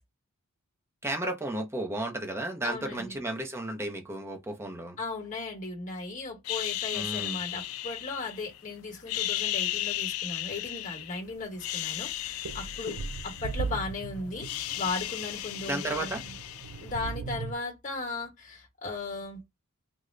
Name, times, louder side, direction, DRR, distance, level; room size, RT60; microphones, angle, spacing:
voice 1, 1.0-5.0 6.9-7.4 15.7-16.2, right 1 dB, 10° right, 0.5 m, -33 dB
voice 2, 2.6-3.2 5.0-16.3 16.8-19.4, left 3 dB, 35° left, 1.1 m, -36 dB
sound 1, 6.4-8.6 9.0-11.2 11.5-13.9 14.2-17.1, left 14 dB, 70° left, 0.3 m, -35 dB
sound 2, 11.3-11.4 11.9-17.5, right 5 dB, 80° right, 0.4 m, -38 dB
3.7 x 2.1 x 3.1 m
head